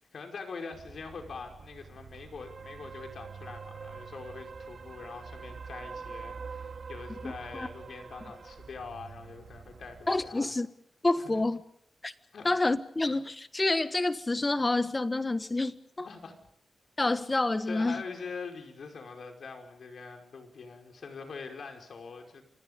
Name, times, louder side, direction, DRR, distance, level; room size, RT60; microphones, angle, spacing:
voice 1, 0.1-10.5 11.2-11.4 12.3-12.5 16.0-16.3 17.7-22.4, left 4 dB, 65° left, 5.2 m, -43 dB
sound 1, 0.7-10.3, right 5 dB, 60° right, 1.9 m, -45 dB
voice 2, 7.2-7.7 10.1-10.7 11.0-11.6 12.0-12.1 12.4-16.1 17.0-18.0, left 2 dB, 20° left, 1.3 m, -28 dB
29.5 x 25.5 x 5.4 m
wide cardioid pair, 115°, 0 cm